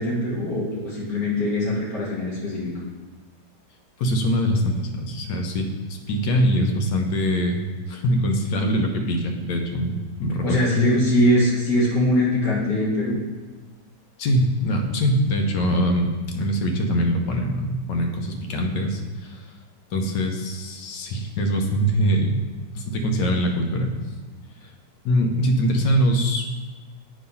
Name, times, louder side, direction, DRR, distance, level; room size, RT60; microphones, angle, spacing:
voice 1, 0.0-2.7 10.4-13.2, left 1 dB, 55° left, -6 dB, 2.3 m, -22 dB
voice 2, 4.0-7.6 7.9-10.7 14.2-19.5 19.9-22.4 22.7-23.9 24.6-24.7 25.0-26.5, equal, 90° left, 3 dB, 1.5 m, -23 dB
8.5 x 3.1 x 5.4 m, 1.3 s
omnidirectional pair, 1.9 m